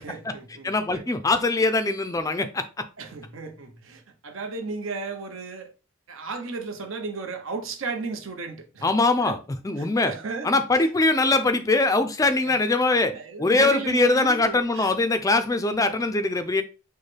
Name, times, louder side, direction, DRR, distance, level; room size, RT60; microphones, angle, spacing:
voice 1, 0.0-1.0 3.0-5.7 6.1-8.9 9.2-9.4 9.8-10.9 12.4-12.5 13.1-14.9, right 4 dB, 75° right, 0.8 m, -34 dB
voice 2, 0.6-2.6 8.8-9.4 9.6-10.1 10.4-13.1 13.4-16.6, left 3 dB, 15° left, 0.3 m, -22 dB
6.3 x 2.1 x 3.3 m
head